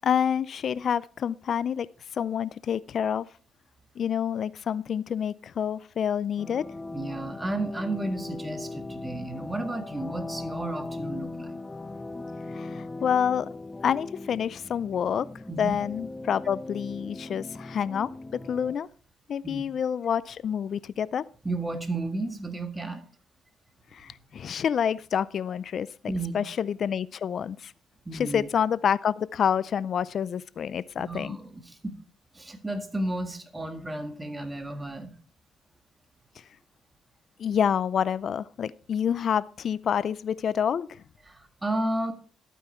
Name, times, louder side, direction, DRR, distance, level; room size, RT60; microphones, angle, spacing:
voice 1, 0.0-3.3 4.0-6.6 12.5-13.5 13.8-15.3 15.6-18.9 19.3-21.2 23.9-25.9 26.3-27.7 28.1-31.4 37.4-41.0, left 8 dB, 60° left, 18 dB, 0.4 m, -28 dB
sound 1, 6.4-18.8, left 2 dB, 20° left, 0.7 m, -39 dB
voice 2, 6.9-11.6 15.5-15.7 19.4-19.6 21.4-23.0 26.1-26.4 28.1-28.5 31.0-32.0 32.3-35.1 41.3-42.1, right 2 dB, 15° right, 8 dB, 1.8 m, -32 dB
12.0 x 9.1 x 4.4 m, 0.41 s
cardioid pair, 90°, 0 cm